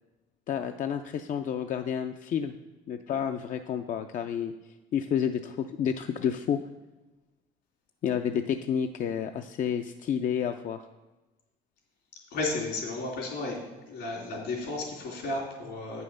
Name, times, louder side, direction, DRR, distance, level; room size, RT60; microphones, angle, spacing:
voice 1, 0.5-2.5 2.9-4.5 4.9-6.6 8.0-10.8, left 8 dB, 50° left, 7 dB, 0.4 m, -30 dB
voice 2, 12.3-13.6 13.9-16.0, left 2 dB, 80° left, -1 dB, 3.1 m, -33 dB
8.6 x 5.6 x 6.3 m, 1.1 s
cardioid pair, 110°, 17 cm